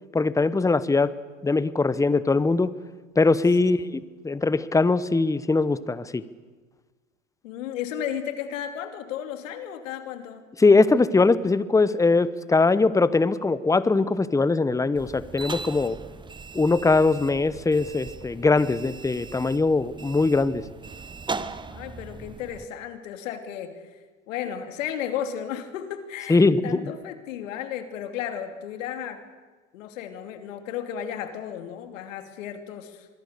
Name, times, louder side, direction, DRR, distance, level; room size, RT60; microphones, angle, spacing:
voice 1, 0.1-1.1 1.4-2.7 3.2-6.2 10.6-16.0 16.5-20.6 26.3-26.9, left 3 dB, 10° left, 16 dB, 1.0 m, -21 dB
voice 2, 3.6-3.9 7.4-10.4 21.7-24.0 24.3-29.2 29.7-33.1, left 9 dB, 75° left, 7 dB, 2.9 m, -34 dB
sound 1, 14.9-22.6, right 4 dB, 10° right, 1.1 m, -39 dB
25.0 x 22.0 x 6.8 m, 1.3 s
hypercardioid pair, 95°, 39 cm